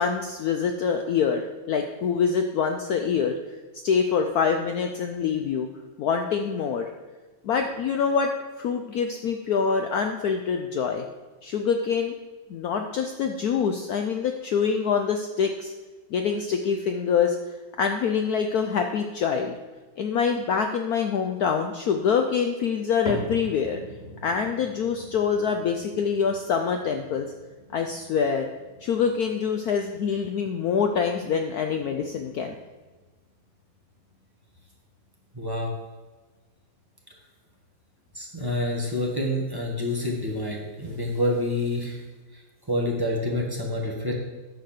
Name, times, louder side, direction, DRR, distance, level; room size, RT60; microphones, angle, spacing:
voice 1, 0.0-3.4 3.8-5.7 6.0-6.9 7.4-8.3 8.6-11.0 11.4-12.1 12.5-15.7 16.1-17.4 17.8-19.5 20.0-23.8 24.2-27.3 27.7-28.5 28.8-32.6, left 6 dB, 85° left, 5 dB, 0.8 m, -25 dB
sound 1, 23.0-39.4 39.7-40.2 40.8-40.9 41.7-41.8, equal, 35° left, 1.1 m, -44 dB
voice 2, 35.3-35.7 38.1-42.0 42.3-42.4 42.7-44.1, left 1 dB, 15° right, -2 dB, 1.0 m, -27 dB
9.6 x 4.1 x 6.6 m, 1.2 s
omnidirectional pair, 2.2 m